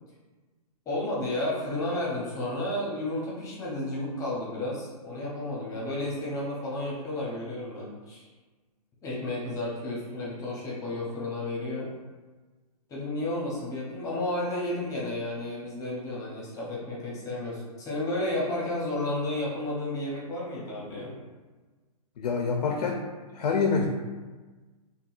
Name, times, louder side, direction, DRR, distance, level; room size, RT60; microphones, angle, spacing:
voice 1, 0.9-8.2 9.0-11.9 12.9-21.1, left 1 dB, 15° left, -5 dB, 0.8 m, -32 dB
voice 2, 22.2-23.0 23.3-23.9, left 5 dB, 80° left, 2 dB, 0.4 m, -26 dB
3.6 x 2.2 x 2.4 m, 1.3 s
hypercardioid pair, 140°, 20 cm